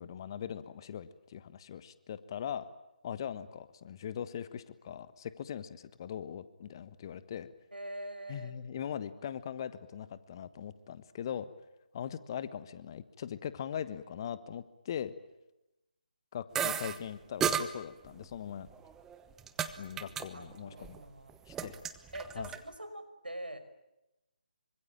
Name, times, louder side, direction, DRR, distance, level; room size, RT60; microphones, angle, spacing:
voice 1, 0.0-2.7 3.0-7.5 8.3-11.5 11.9-15.1 16.3-18.7 19.8-20.9 21.5-21.8 22.3-22.5, left 9 dB, 30° left, 14 dB, 1.4 m, -40 dB
voice 2, 7.7-8.5 20.3-21.3 22.1-23.6, right 1 dB, 85° right, 10 dB, 5.4 m, -44 dB
sound 1, 16.6-17.0 17.4-17.7 18.7-19.7 20.0-20.3 20.5-21.0 21.3-22.6, right 8 dB, 10° right, 1.1 m, -33 dB
26.5 x 25.0 x 9.0 m, 0.95 s
figure-of-eight pair, 150°, 5 cm